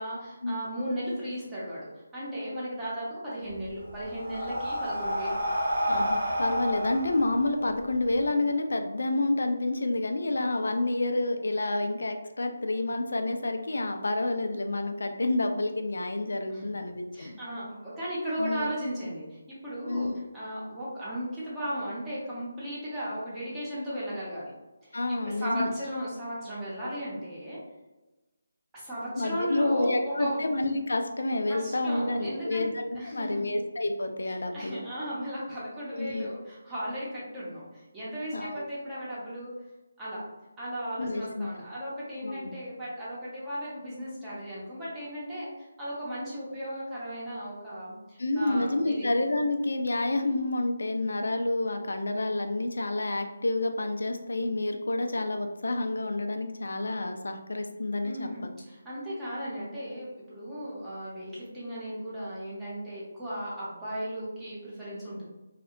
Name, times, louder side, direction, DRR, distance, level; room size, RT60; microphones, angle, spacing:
voice 1, 0.0-1.9 2.1-5.4 16.5-16.7 17.1-19.4 19.6-20.1 20.3-24.5 25.2-27.6 28.7-30.4 31.5-32.7 32.9-33.4 34.5-39.5 40.0-40.2 40.6-49.1 58.0-65.3, equal, 10° right, -10 dB, 0.7 m, -36 dB
Breathing, 3.5-8.2, equal, 85° right, 0.7 m, -30 dB
voice 2, 5.8-17.4 18.4-18.7 19.9-20.1 24.9-25.7 29.2-34.8 35.9-36.3 38.3-38.7 41.0-41.5 42.2-42.6 48.2-58.3, left 2 dB, 80° left, 5 dB, 0.4 m, -29 dB
2.7 x 2.1 x 2.4 m, 1.1 s
hypercardioid pair, 170°, 0 cm